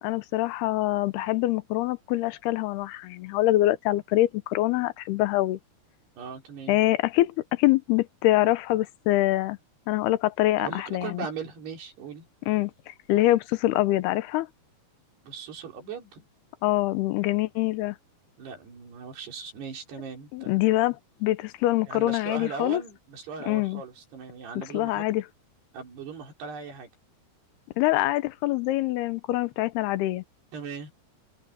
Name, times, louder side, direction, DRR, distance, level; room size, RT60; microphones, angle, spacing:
voice 1, 0.0-5.6 6.7-9.6 9.9-11.3 12.5-14.5 16.6-18.0 20.3-21.0 21.2-22.8 23.5-23.8 24.6-25.2 27.8-30.2, left 16 dB, 90° left, 2.8 m, -25 dB
voice 2, 6.2-6.8 10.6-12.3 15.2-16.3 17.2-17.4 18.4-20.7 21.9-25.0 25.7-26.9 30.5-30.9, right 5 dB, 85° right, 6.5 m, -39 dB
open air
omnidirectional pair, 4.6 m